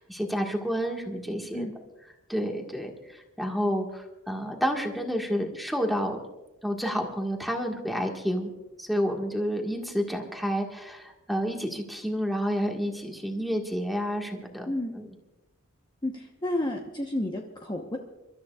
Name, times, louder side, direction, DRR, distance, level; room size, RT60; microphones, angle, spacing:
voice 1, 0.0-1.7 2.3-6.2 6.6-8.5 8.8-15.1, equal, ahead, 0 dB, 1.7 m, -30 dB
voice 2, 14.7-15.0 16.0-18.0, left 1 dB, 20° left, 0 dB, 1.1 m, -31 dB
29.5 x 13.5 x 2.4 m, 0.98 s
head